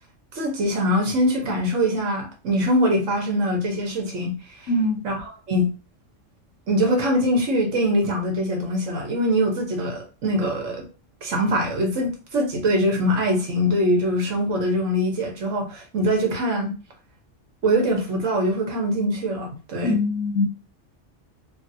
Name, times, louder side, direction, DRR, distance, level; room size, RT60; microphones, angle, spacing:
voice 1, 0.3-4.4 5.0-5.7 6.7-10.8 11.2-16.7 17.6-20.0, equal, 75° right, 1.3 m, -23 dB
voice 2, 4.7-5.0 19.8-20.5, left 2 dB, 80° left, 1.0 m, -22 dB
3.7 x 2.1 x 2.7 m
omnidirectional pair, 1.3 m